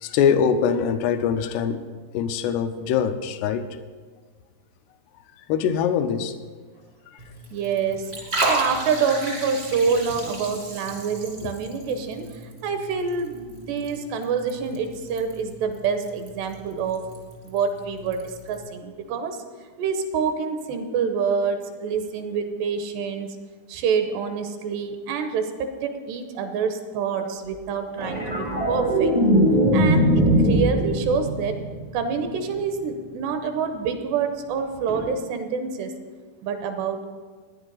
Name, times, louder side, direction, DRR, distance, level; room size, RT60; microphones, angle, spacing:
voice 1, 0.0-1.8 2.1-3.6 5.5-6.3, left 7 dB, 80° left, 10 dB, 2.5 m, -23 dB
Liquid, 7.2-18.6, right 2 dB, 40° right, 0.8 m, -34 dB
voice 2, 7.5-17.1 17.4-19.4 19.8-23.4 23.7-29.2 29.7-31.6 31.9-35.9 36.4-37.0, right 6 dB, 80° right, 6 dB, 2.8 m, -27 dB
sound 1, 28.0-32.5 34.9-35.0, equal, 55° right, 0.4 m, -21 dB
17.0 x 10.0 x 4.0 m, 1.5 s
omnidirectional pair, 5.2 m